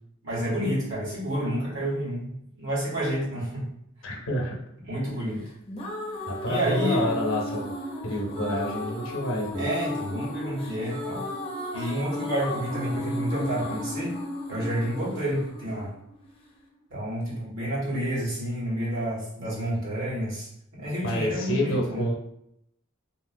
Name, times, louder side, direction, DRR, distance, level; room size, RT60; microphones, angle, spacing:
voice 1, 0.2-3.7 4.9-5.4 6.5-7.1 9.5-11.2 11.7-14.2 14.5-15.9 16.9-20.5 20.7-22.1, right 1 dB, 65° right, -7 dB, 1.4 m, -29 dB
voice 2, 4.0-4.6 6.3-7.7 8.0-9.7 21.0-22.1, equal, 65° left, -1 dB, 0.7 m, -28 dB
sound 1, 5.4-16.5, left 1 dB, 30° left, 0.6 m, -35 dB
2.8 x 2.8 x 2.5 m, 0.77 s
head